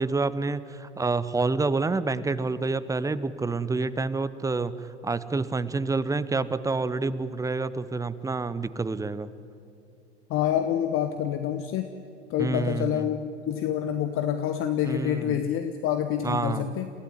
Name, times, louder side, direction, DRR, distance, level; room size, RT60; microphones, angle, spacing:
voice 1, 0.0-9.3 12.4-13.0 14.8-15.4 16.2-16.7, right 3 dB, 10° right, 15 dB, 0.9 m, -28 dB
voice 2, 10.3-11.9 12.3-16.9, left 10 dB, 40° left, 8 dB, 1.3 m, -27 dB
29.0 x 16.0 x 9.8 m, 2.6 s
figure-of-eight pair, 80°, 35 cm